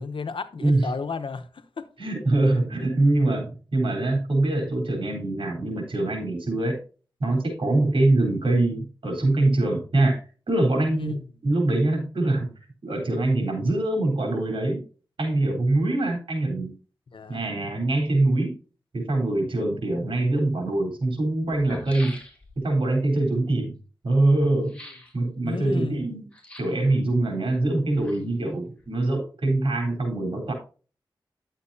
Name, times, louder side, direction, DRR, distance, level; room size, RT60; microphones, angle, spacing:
voice 1, 0.0-1.9 2.8-2.9 10.9-11.3 17.1-17.4 24.7-24.8 25.4-26.1, left 4 dB, 80° left, 1.0 m, -33 dB
voice 2, 2.0-6.8 7.2-10.2 10.5-11.1 11.4-12.5 12.8-14.8 15.2-16.7 17.3-18.6 18.9-22.2 22.6-23.8 24.0-24.7 25.1-26.3 26.6-30.5, right 2 dB, 85° right, 3.6 m, -23 dB
sound 1, 21.1-21.2 21.5-22.7 24.7-25.2 26.3-26.9 27.7-28.5 28.8-28.9, left 1 dB, 15° left, 3.2 m, -43 dB
10.5 x 7.4 x 2.7 m
wide cardioid pair, 60°, 9 cm